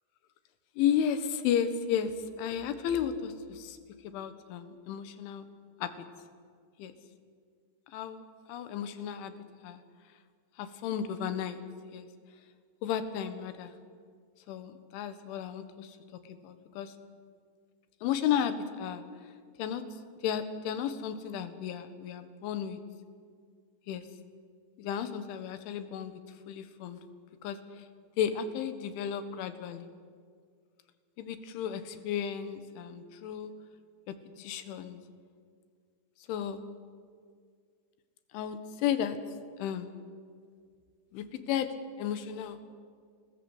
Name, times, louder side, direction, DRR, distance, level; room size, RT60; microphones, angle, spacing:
voice 1, 0.8-3.8 4.0-5.5 5.8-6.1 6.8-7.0 7.9-9.4 9.6-9.8 10.6-11.6 11.9-12.1 12.8-13.7 14.5-16.9 18.0-19.1 19.6-19.8 20.2-22.8 23.9-24.1 24.8-26.2 26.5-27.0 27.4-27.9 28.2-29.9 31.2-33.5 34.1-35.0 36.3-36.6 38.3-39.2 39.6-39.9 41.1-41.7 42.0-42.6, left 8 dB, 90° left, 10 dB, 3.9 m, -33 dB
27.5 x 20.0 x 8.1 m, 2.1 s
omnidirectional pair, 5.3 m